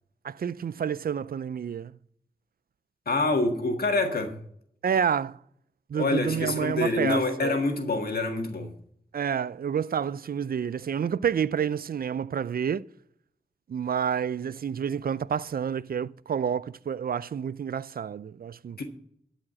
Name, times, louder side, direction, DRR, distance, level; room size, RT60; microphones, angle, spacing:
voice 1, 0.2-1.9 4.8-5.4 5.9-7.6 9.1-12.8 13.7-18.8, right 7 dB, 65° right, 0.4 m, -29 dB
voice 2, 3.1-4.3 6.0-8.7 18.8-18.9, left 2 dB, 70° left, 1.8 m, -26 dB
12.5 x 5.0 x 7.6 m
cardioid pair, 55°, 16 cm